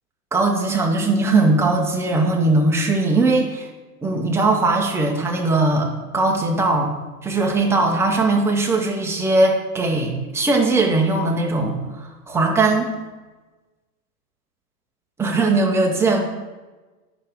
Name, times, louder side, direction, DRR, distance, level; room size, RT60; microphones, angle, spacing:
voice 1, 0.3-3.7 4.0-5.9 6.1-6.9 7.2-12.9 15.2-16.2, right 2 dB, 5° right, 1 dB, 0.6 m, -19 dB
9.5 x 5.8 x 3.6 m, 1.2 s
hypercardioid pair, 125°, 47 cm